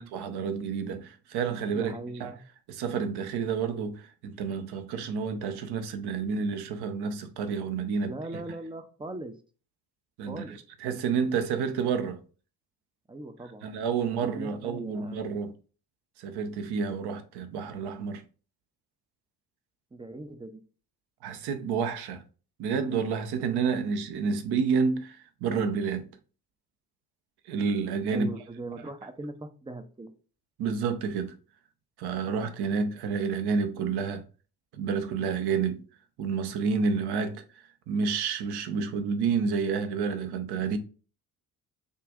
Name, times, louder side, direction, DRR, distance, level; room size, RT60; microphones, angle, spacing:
voice 1, 0.0-1.9 2.2-2.3 2.7-8.1 10.2-12.2 13.6-15.5 16.2-18.2 21.2-22.2 22.6-26.1 27.5-28.3 30.6-31.3 32.0-34.2 34.7-35.8 36.2-40.8, right 5 dB, 55° right, 0.9 m, -29 dB
voice 2, 1.7-2.4 8.0-9.3 10.3-10.6 13.1-13.7 14.2-15.3 19.9-20.6 28.1-30.1, right 2 dB, 10° right, 0.5 m, -40 dB
6.6 x 2.5 x 2.4 m
hypercardioid pair, 50°, 48 cm